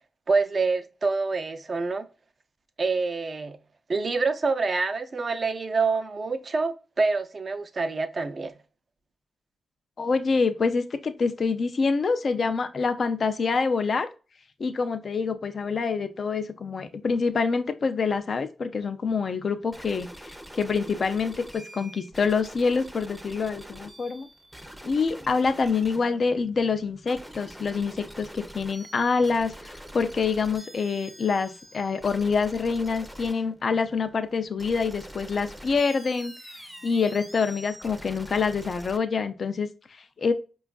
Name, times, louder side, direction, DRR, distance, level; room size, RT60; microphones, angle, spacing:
voice 1, 0.3-2.0 2.8-3.6 3.9-8.5, right 4 dB, 50° right, 0.5 m, -26 dB
voice 2, 10.0-14.1 14.6-24.3 24.8-36.3 36.6-40.3, left 5 dB, 55° left, 0.4 m, -26 dB
sound 1, 19.7-39.0, equal, 5° right, 0.6 m, -45 dB
5.0 x 2.3 x 2.3 m
cardioid pair, 55°, 0 cm